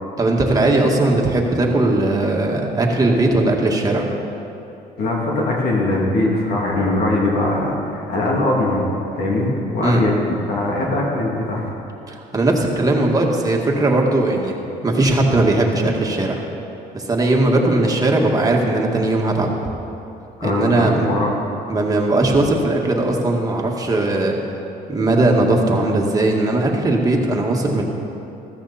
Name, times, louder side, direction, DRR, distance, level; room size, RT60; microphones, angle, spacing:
voice 1, 0.2-4.1 9.8-10.0 12.1-14.6 14.8-16.4 16.9-19.5 20.4-21.1 21.7-24.4 24.9-27.8, right 2 dB, 20° right, 0 dB, 2.0 m, -18 dB
voice 2, 5.0-8.9 9.1-10.2 10.5-11.7 20.4-21.3, left 2 dB, 70° left, -3 dB, 2.8 m, -21 dB
14.5 x 14.0 x 4.3 m, 2.9 s
cardioid pair, 110°, 17 cm